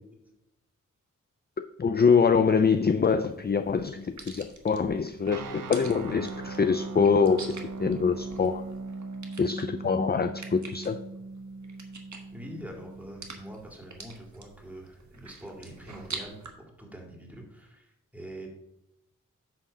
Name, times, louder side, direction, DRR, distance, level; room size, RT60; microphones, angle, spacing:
voice 1, 1.6-8.6 9.4-11.0, left 5 dB, 30° left, 9 dB, 0.4 m, -24 dB
sound 1, 2.5-16.5, right 3 dB, 60° right, 1.4 m, -47 dB
sound 2, 5.3-13.6, right 3 dB, 90° right, 0.7 m, -40 dB
voice 2, 12.3-18.5, right 1 dB, 5° right, 0 dB, 2.4 m, -44 dB
9.3 x 3.7 x 6.6 m, 0.89 s
wide cardioid pair, 70°, 32 cm